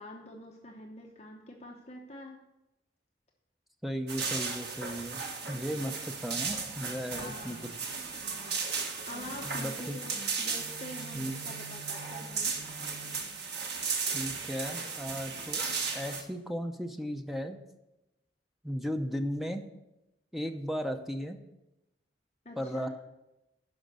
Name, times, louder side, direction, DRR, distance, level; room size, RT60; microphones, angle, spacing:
voice 1, 0.0-2.4 5.7-5.9 7.1-8.0 9.1-12.5 22.4-22.9, left 1 dB, 35° left, 0 dB, 0.9 m, -46 dB
voice 2, 3.8-7.6 9.4-10.0 11.1-11.4 14.1-15.6 15.9-17.6 18.6-19.6 20.3-21.4 22.6-22.9, equal, ahead, 5 dB, 0.7 m, -36 dB
sound 1, 4.1-16.2, right 5 dB, 65° right, 1.4 m, -35 dB
11.5 x 5.2 x 6.7 m, 0.94 s
head